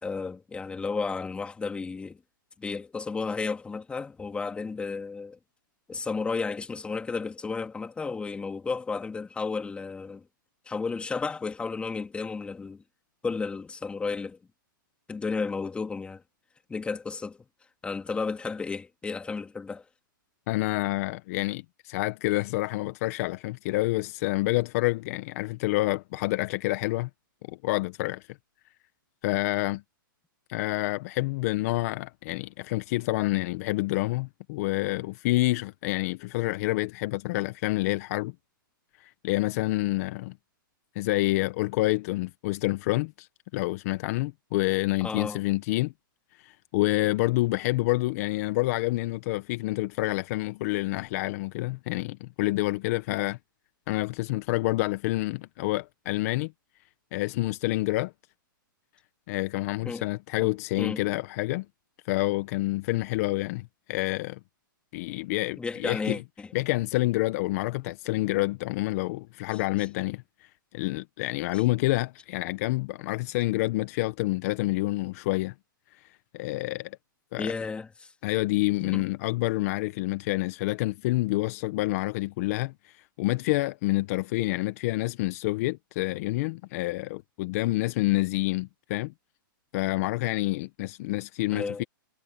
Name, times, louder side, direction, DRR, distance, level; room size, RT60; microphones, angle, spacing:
voice 1, 0.0-2.2 2.6-5.4 5.9-10.2 10.7-12.8 13.2-14.4 15.1-16.2 16.7-17.4 17.8-19.8 45.0-45.4 59.8-60.0 60.4-60.5 60.8-61.0 65.6-66.5 77.4-78.1 78.8-79.0 91.5-91.9, left 4 dB, 10° left, 3.0 m, -33 dB
voice 2, 20.5-27.1 27.5-28.4 29.2-29.8 30.5-38.3 39.0-40.3 40.9-43.3 43.5-45.9 46.3-53.4 53.9-56.5 57.1-58.1 59.3-61.7 62.0-64.4 64.9-66.2 66.5-70.5 70.7-75.5 75.9-76.0 76.3-77.0 77.3-77.5 78.2-89.1 89.7-91.8, left 19 dB, 45° left, 1.1 m, -28 dB
hypercardioid pair, 140°, 11 cm